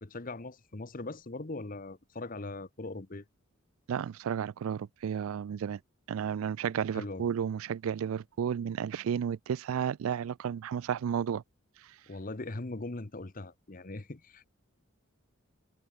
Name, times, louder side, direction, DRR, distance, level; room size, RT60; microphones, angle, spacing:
voice 1, 0.0-3.2 6.9-7.3 12.1-14.5, left 2 dB, 40° left, 1.0 m, -40 dB
voice 2, 3.9-5.8 6.1-11.4, right 8 dB, 80° right, 0.3 m, -32 dB
head